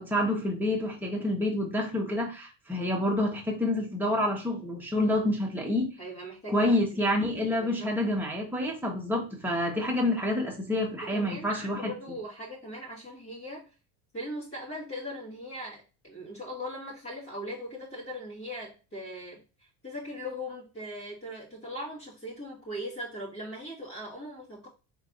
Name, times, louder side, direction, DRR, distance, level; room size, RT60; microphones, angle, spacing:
voice 1, 0.0-5.9 6.5-11.9, left 1 dB, 5° right, 1.4 m, -28 dB
voice 2, 6.0-7.0 7.6-7.9 11.0-13.7 14.1-19.4 19.8-24.7, equal, 25° left, 2.2 m, -39 dB
4.5 x 3.3 x 2.7 m
supercardioid pair, 85°, 48 cm